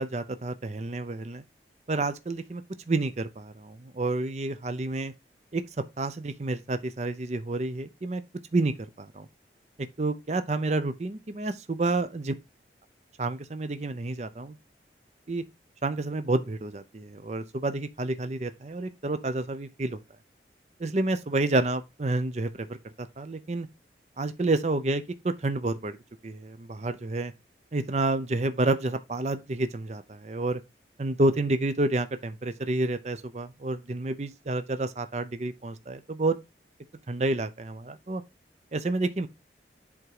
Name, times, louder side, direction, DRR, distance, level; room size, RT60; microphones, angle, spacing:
voice 1, 0.0-1.4 1.9-5.1 5.5-5.6 6.0-8.2 8.5-9.3 10.0-12.3 13.2-14.6 15.3-15.4 15.8-20.0 20.8-23.7 24.2-26.0 26.2-27.3 27.7-30.6 31.0-36.4 37.1-38.2 38.7-39.3, right 2 dB, 40° right, 0.5 m, -29 dB
7.8 x 3.6 x 4.7 m
head